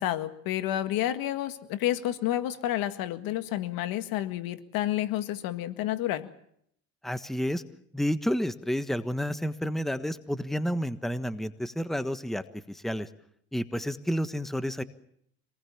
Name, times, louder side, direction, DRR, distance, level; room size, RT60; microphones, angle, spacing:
voice 1, 0.0-6.3, left 13 dB, 80° left, 10 dB, 1.9 m, -30 dB
voice 2, 7.0-7.6 7.9-13.1 13.5-14.8, equal, ahead, 12 dB, 1.3 m, -30 dB
26.0 x 19.5 x 7.3 m, 0.69 s
cardioid pair, 100°, 35 cm